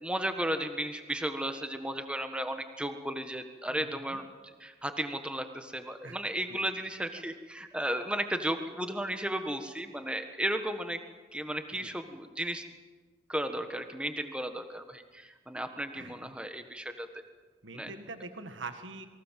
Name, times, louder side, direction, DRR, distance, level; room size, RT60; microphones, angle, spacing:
voice 1, 0.0-4.3 4.6-11.0 11.3-12.6 13.3-17.2 17.7-17.9, right 1 dB, 5° right, 7 dB, 1.4 m, -34 dB
voice 2, 3.7-4.2 6.0-6.2 6.5-6.6 15.9-16.2 17.6-19.1, right 3 dB, 80° right, 8 dB, 1.7 m, -43 dB
28.5 x 23.0 x 7.6 m, 1.4 s
head